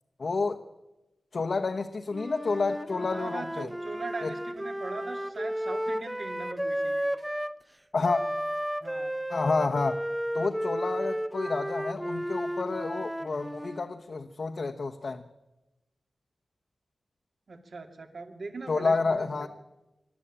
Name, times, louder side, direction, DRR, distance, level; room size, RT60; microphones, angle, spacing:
voice 1, 0.2-0.6 1.3-3.7 4.2-4.3 7.9-8.2 9.3-10.0 10.3-15.2 18.7-19.5, left 4 dB, 60° left, 4 dB, 1.0 m, -29 dB
Wind instrument woodwind instrument, 2.1-7.6 8.0-13.9, equal, 5° right, 0.7 m, -33 dB
voice 2, 3.1-7.1 8.8-9.1 17.5-19.5, right 3 dB, 65° right, 4 dB, 2.8 m, -40 dB
25.5 x 12.5 x 8.8 m, 1.0 s
wide cardioid pair, 120°, 0 cm